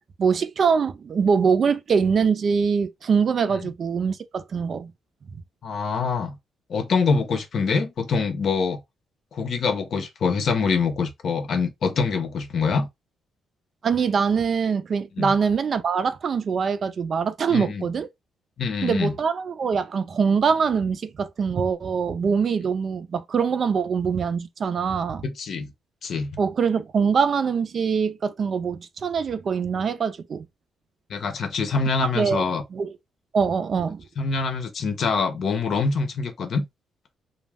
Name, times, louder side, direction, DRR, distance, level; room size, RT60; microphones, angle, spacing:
voice 1, 0.2-4.9 13.8-18.1 18.8-25.3 26.4-30.5 32.1-32.4 32.7-32.9 33.3-34.0, right 6 dB, 50° right, 0.4 m, -23 dB
voice 2, 5.6-6.4 6.7-8.8 9.3-12.9 15.2-15.3 17.5-17.9 18.6-19.1 25.2-25.7 26.0-26.3 31.1-32.6 34.2-36.6, left 5 dB, 60° left, 0.7 m, -25 dB
2.3 x 2.1 x 3.4 m
cardioid pair, 80°, 0 cm